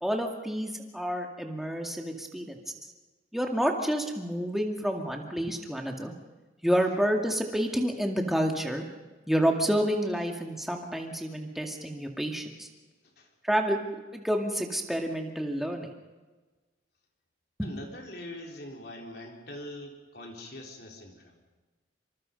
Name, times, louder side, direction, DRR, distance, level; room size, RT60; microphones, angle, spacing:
voice 1, 0.0-2.6 3.3-6.1 6.6-8.8 9.3-12.7 13.4-13.8 14.1-15.9, equal, ahead, 2 dB, 2.2 m, -29 dB
voice 2, 17.6-21.3, left 1 dB, 55° left, 1 dB, 4.0 m, -43 dB
26.0 x 25.5 x 5.4 m, 1.2 s
head